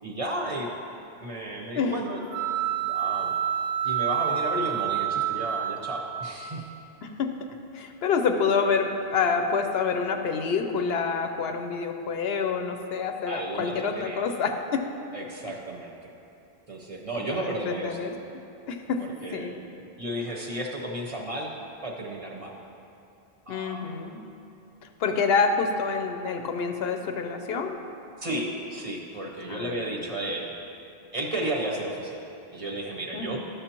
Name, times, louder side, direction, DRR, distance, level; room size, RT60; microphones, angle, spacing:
voice 1, 0.0-0.7 1.2-2.2 2.8-3.3 3.8-6.6 13.2-14.3 15.1-16.1 16.7-18.2 19.0-19.5 20.0-21.5 21.8-22.5 23.5-23.9 28.2-30.5 31.1-32.2 32.5-33.4, right 1 dB, 35° right, -2 dB, 0.8 m, -33 dB
sound 1, 2.3-6.4, right 10 dB, 85° right, 1.1 m, -28 dB
voice 2, 7.0-7.3 7.7-14.9 17.2-18.1 18.7-19.0 19.3-19.6 23.5-24.2 25.0-27.8 29.5-29.9 33.1-33.4, left 5 dB, 70° left, 5 dB, 0.8 m, -27 dB
11.5 x 6.8 x 2.9 m, 2.7 s
omnidirectional pair, 1.1 m